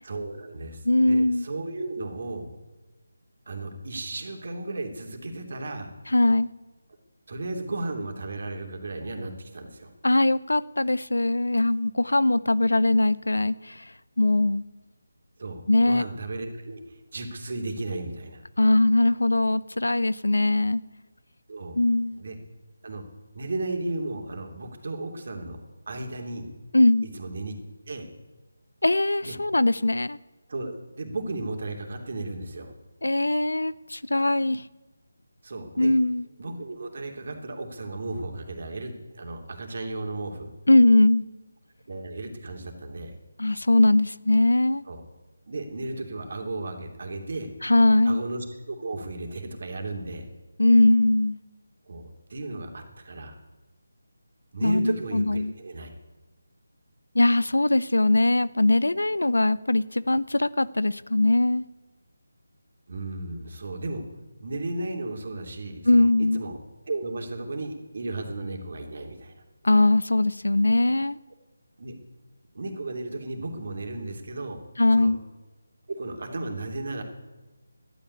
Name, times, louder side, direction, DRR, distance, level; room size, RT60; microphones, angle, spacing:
voice 1, 0.0-2.5 3.5-5.9 7.3-9.9 15.4-18.4 21.5-21.8 22.2-22.3 22.8-23.0 23.3-25.6 25.9-26.5 27.1-27.5 27.9-28.1 29.2-29.3 30.5-32.7 35.4-35.9 36.4-40.5 41.9-43.1 44.9-45.0 45.5-47.5 48.0-50.2 51.9-53.4 54.5-55.9 62.9-64.0 64.4-66.6 66.9-69.4 71.8-71.9 72.5-74.6 74.9-75.1 75.9-77.0, right 2 dB, 55° right, 3.0 m, -34 dB
voice 2, 0.9-1.5 6.1-6.5 10.0-13.8 14.2-14.6 15.7-16.0 18.6-20.8 21.7-22.2 26.7-27.1 28.8-30.2 33.0-34.6 35.8-36.3 40.7-41.2 43.4-44.8 47.6-48.2 50.6-51.4 54.6-55.5 57.1-61.6 65.8-66.4 69.6-71.2 74.8-75.2, left 2 dB, 85° left, 0.6 m, -21 dB
12.0 x 9.2 x 9.7 m
figure-of-eight pair, 165°, 0 cm